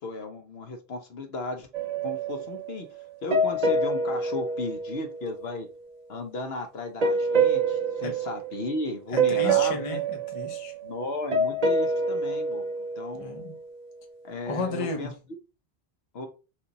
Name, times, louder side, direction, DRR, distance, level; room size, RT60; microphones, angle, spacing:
voice 1, 0.0-1.7 2.0-2.9 3.2-5.7 6.1-10.0 10.8-12.6 13.0-13.3 14.2-15.1 16.1-16.3, left 2 dB, 70° left, 1.1 m, -35 dB
sound 1, 1.7-5.6 7.0-8.9 9.2-13.7, right 3 dB, 45° right, 0.7 m, -27 dB
voice 2, 9.1-10.7 13.1-13.6 14.5-15.2, left 3 dB, 35° left, 0.7 m, -34 dB
4.5 x 2.5 x 3.9 m
omnidirectional pair, 1.1 m